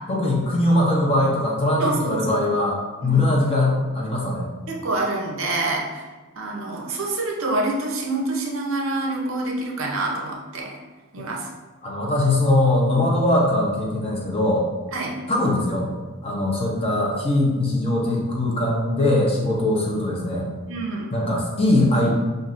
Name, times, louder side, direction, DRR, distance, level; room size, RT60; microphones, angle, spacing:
voice 1, 0.1-4.5 11.2-11.3 11.8-14.6 15.3-15.9 16.2-20.5 21.1-22.1, left 1 dB, 25° left, -3 dB, 0.7 m, -21 dB
voice 2, 1.8-2.3 3.0-3.3 4.7-6.1 6.4-10.8 11.1-11.5 14.9-15.2 20.7-21.2, right 2 dB, 60° right, -1 dB, 0.7 m, -26 dB
5.8 x 2.5 x 2.5 m, 1.3 s
head